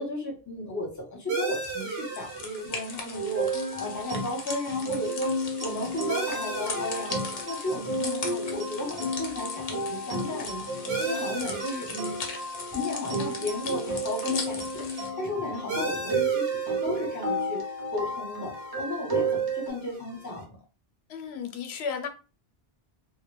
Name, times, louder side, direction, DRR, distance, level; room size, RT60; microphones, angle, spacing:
voice 1, 0.0-3.5 3.8-7.1 7.4-10.6 11.0-12.1 12.7-17.7 17.9-20.4, left 1 dB, 20° left, -1 dB, 0.7 m, -34 dB
sound 1, 1.3-20.4, right 4 dB, 85° right, 1.0 m, -39 dB
sound 2, 1.5-15.1, left 4 dB, 55° left, 0.7 m, -39 dB
sound 3, 3.1-19.7, right 2 dB, 30° right, 0.5 m, -32 dB
voice 2, 21.1-22.1, left 6 dB, 85° left, 5 dB, 0.8 m, -34 dB
2.2 x 2.1 x 3.0 m, 0.34 s
omnidirectional pair, 1.0 m